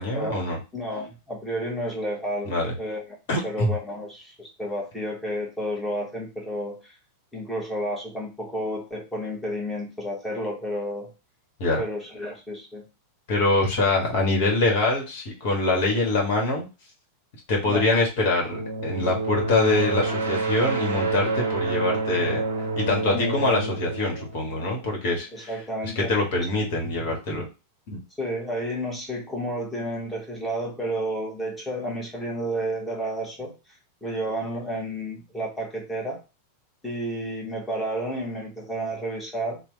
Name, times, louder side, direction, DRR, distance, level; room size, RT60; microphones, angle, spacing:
voice 1, 0.0-0.6 2.4-2.7 3.3-3.7 11.6-11.8 13.3-16.7 17.5-22.4 22.8-25.5 25.9-27.5 27.9-28.0, left 2 dB, 50° left, 1 dB, 1.3 m, -24 dB
voice 2, 0.7-3.2 3.4-6.9 7.3-11.1 11.8-12.8 17.7-17.9 23.1-23.4 25.3-26.1 26.4-26.5 28.2-33.5 34.0-36.2 36.8-39.6, equal, 5° left, -3 dB, 1.5 m, -31 dB
sound 1, 18.5-25.2, right 3 dB, 70° right, 0.6 m, -28 dB
3.3 x 2.3 x 3.2 m, 0.28 s
figure-of-eight pair, 90°, 0 cm